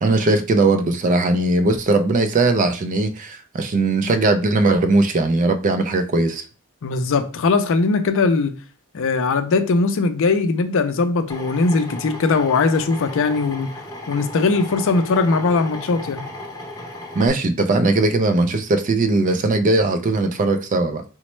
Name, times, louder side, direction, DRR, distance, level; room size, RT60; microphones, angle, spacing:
voice 1, 0.0-6.4 17.1-21.0, right 2 dB, 35° right, 0.3 m, -19 dB
voice 2, 6.8-8.5 8.9-13.7 14.1-16.3, left 4 dB, 60° left, 0.4 m, -20 dB
Drill, 11.3-17.3, left 1 dB, 15° left, 0.7 m, -35 dB
4.1 x 2.1 x 3.0 m
head